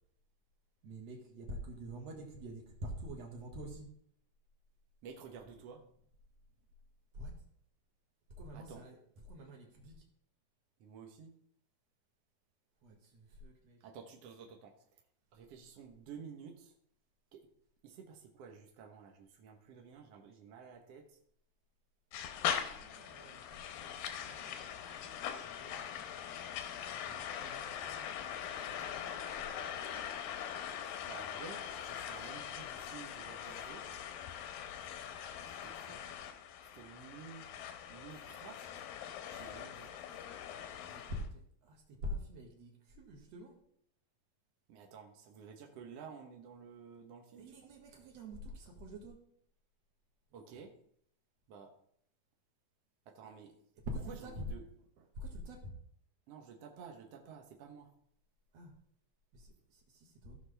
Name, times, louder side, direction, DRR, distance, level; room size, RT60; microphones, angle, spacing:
voice 1, 0.8-3.9 7.1-7.4 8.4-9.0 9.3-10.0 12.8-13.8 22.7-24.7 25.0-26.1 26.9-28.1 28.6-30.0 39.3-39.8 40.9-43.6 47.4-49.2 50.5-50.7 53.9-54.4 55.2-55.7 58.5-58.7 59.3-60.4, equal, 55° right, 2 dB, 2.3 m, -47 dB
voice 2, 5.0-5.9 8.5-8.9 10.8-11.4 13.8-15.0 15.3-16.7 17.3-17.5 17.8-21.2 31.0-33.9 35.5-36.1 36.7-37.5 37.9-38.9 39.3-39.9 44.7-47.8 50.3-50.8 51.5-51.8 53.0-53.6 54.1-54.7 55.0-55.1 56.3-57.9, right 6 dB, 75° right, 1 dB, 1.4 m, -52 dB
sound 1, 22.1-41.3, left 9 dB, 80° left, 2.5 m, -42 dB
16.0 x 5.9 x 3.3 m, 0.65 s
omnidirectional pair, 4.2 m